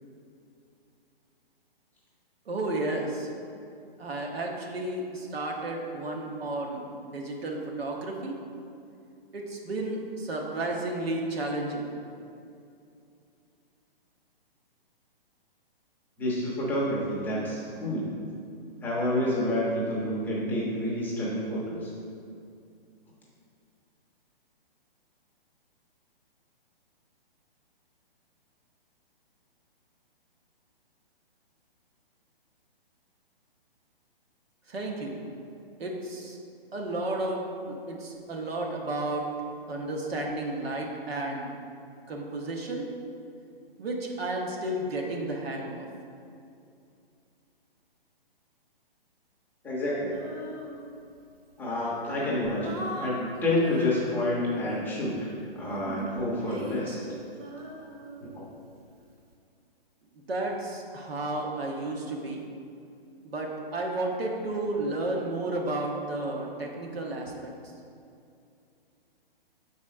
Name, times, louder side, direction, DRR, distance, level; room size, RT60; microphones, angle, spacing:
voice 1, 2.5-3.3 4.0-8.4 9.3-11.9 34.7-35.2 35.8-36.4 36.7-39.3 39.7-41.5 42.1-42.9 43.8-45.9 60.1-62.4 63.2-67.5, right 2 dB, 85° right, 0 dB, 1.2 m, -32 dB
voice 2, 16.2-18.2 18.8-21.9 49.6-50.2 51.6-55.3 55.5-57.0 58.2-58.4, left 1 dB, 5° left, -7 dB, 0.5 m, -29 dB
Female singing, 50.1-51.2 51.8-55.0 55.6-58.8, equal, 40° right, 0.7 m, -40 dB
5.2 x 4.2 x 4.8 m, 2.5 s
hypercardioid pair, 145°, 30 cm